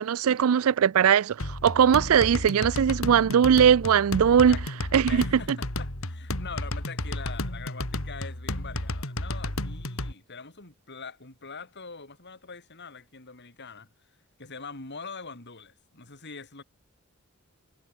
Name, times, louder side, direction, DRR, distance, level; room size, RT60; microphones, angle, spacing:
voice 1, 0.0-4.6 4.9-5.2, right 8 dB, 75° right, 0.4 m, -20 dB
sound 1, 1.4-10.1, left 1 dB, 70° left, 3.8 m, -32 dB
voice 2, 5.1-13.9 14.4-16.6, left 4 dB, 55° left, 4.9 m, -43 dB
head